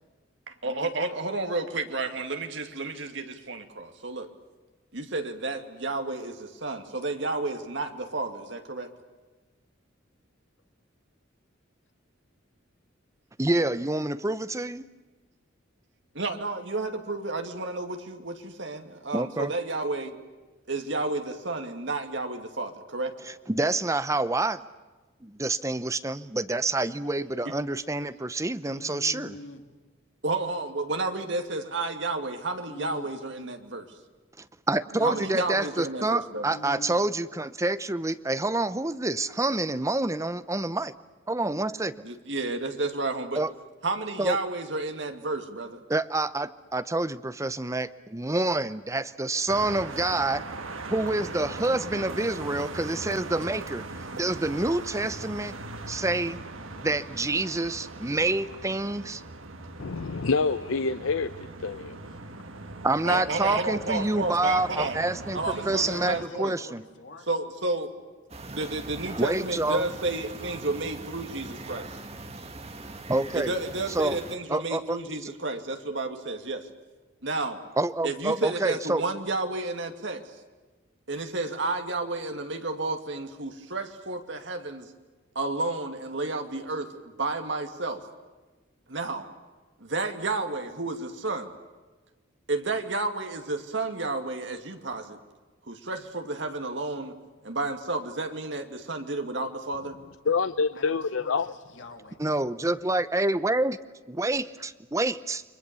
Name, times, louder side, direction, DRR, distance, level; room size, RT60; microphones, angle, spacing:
voice 1, 0.5-4.3 4.9-8.9 16.1-20.2 20.7-23.1 30.2-33.9 35.0-36.5 42.0-43.4 43.8-45.8 63.0-65.0 65.3-66.5 67.3-67.9 68.5-71.8 73.3-76.7 77.2-77.6 78.0-80.2 81.1-84.9 85.3-86.9 87.2-88.0 88.9-89.3 89.8-91.5 92.5-95.2 95.7-97.1 97.4-100.0, right 2 dB, 65° right, 2.5 m, -31 dB
voice 2, 13.4-14.9 19.1-19.5 23.2-24.6 25.2-29.3 34.4-40.9 41.3-41.9 43.3-43.5 44.2-44.4 45.9-50.4 50.9-53.9 54.1-55.5 55.9-56.4 56.8-59.2 62.8-66.8 69.2-69.8 73.1-73.5 73.9-74.2 74.5-75.3 77.8-79.0 102.2-103.8 104.1-105.4, right 2 dB, 15° right, 0.8 m, -27 dB
voice 3, 28.6-29.6 32.7-33.1 33.4-33.5 34.7-35.3 36.4-37.0 65.5-67.3 100.7-102.2, left 2 dB, 65° left, 2.7 m, -45 dB
sound 1, 49.5-66.2, right 2 dB, 85° right, 2.0 m, -40 dB
voice 4, 59.8-61.3 61.6-62.0 100.3-101.5, left 4 dB, 90° left, 0.7 m, -26 dB
sound 2, 68.3-74.4, right 2 dB, 30° right, 1.7 m, -41 dB
30.0 x 23.5 x 7.0 m
head